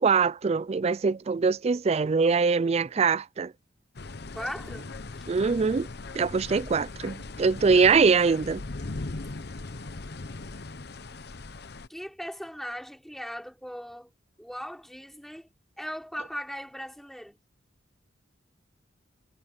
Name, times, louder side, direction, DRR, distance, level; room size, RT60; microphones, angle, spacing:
voice 1, 0.0-3.5 5.3-5.9 6.1-8.6, right 5 dB, 35° right, 0.4 m, -23 dB
sound 1, 4.0-11.9, left 3 dB, 60° left, 0.9 m, -39 dB
voice 2, 4.3-4.9 11.9-14.1 14.4-15.5 15.8-17.4, equal, ahead, 3.9 m, -38 dB
head